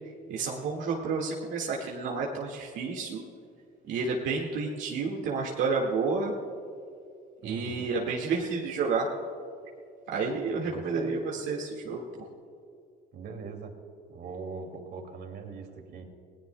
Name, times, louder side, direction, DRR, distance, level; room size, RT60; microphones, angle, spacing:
voice 1, 0.3-3.2 3.9-6.3 7.4-9.1 10.1-12.0, right 4 dB, 70° right, -2 dB, 1.9 m, -30 dB
voice 2, 7.4-7.9 10.6-11.1 13.1-13.7 14.1-16.1, right 4 dB, 55° right, 4 dB, 2.4 m, -41 dB
29.5 x 18.0 x 2.2 m, 2.4 s
cardioid pair, 115°, 20 cm